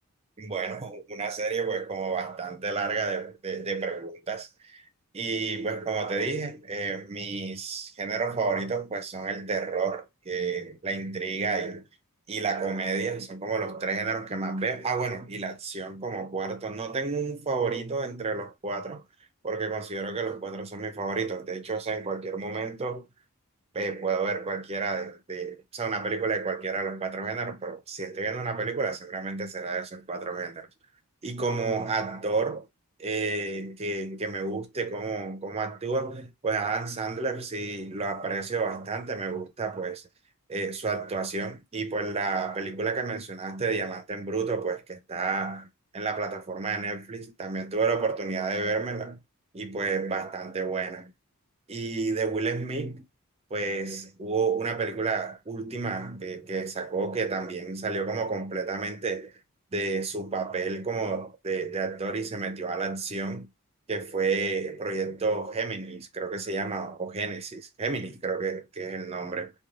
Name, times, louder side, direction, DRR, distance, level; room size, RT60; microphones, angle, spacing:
voice 1, 0.4-4.9 5.1-11.8 12.3-19.0 19.4-23.1 23.7-30.7 31.2-32.7 33.0-40.0 40.5-45.7 45.9-49.2 49.5-51.1 51.7-53.1 53.5-59.3 59.7-63.5 63.9-69.5, right 4 dB, 30° right, 0.5 m, -31 dB
3.0 x 2.2 x 2.5 m
head